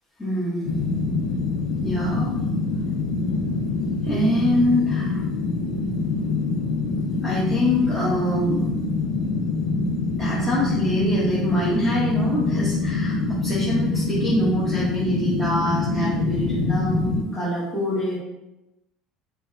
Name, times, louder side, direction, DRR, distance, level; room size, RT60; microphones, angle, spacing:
voice 1, 0.2-0.8 1.8-2.4 4.0-5.2 7.2-8.7 10.2-18.2, left 1 dB, ahead, -10 dB, 1.0 m, -25 dB
sound 1, 0.6-17.2, left 3 dB, 70° left, 0.4 m, -25 dB
4.5 x 2.0 x 2.6 m, 0.94 s
supercardioid pair, 120°, 0 cm